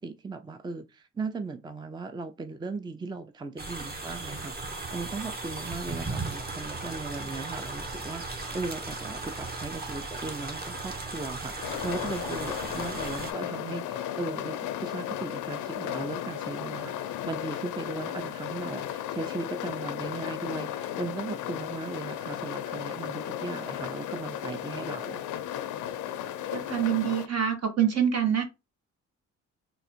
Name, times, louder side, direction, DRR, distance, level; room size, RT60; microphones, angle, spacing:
voice 1, 0.0-25.2, right 3 dB, 15° right, 0.5 m, -37 dB
sound 1, 3.6-13.3, right 3 dB, 30° right, 1.3 m, -36 dB
sound 2, 11.6-27.3, left 11 dB, 85° left, 0.6 m, -35 dB
voice 2, 26.5-28.4, right 9 dB, 55° right, 1.4 m, -25 dB
3.9 x 2.5 x 4.4 m
cardioid pair, 90°, 30 cm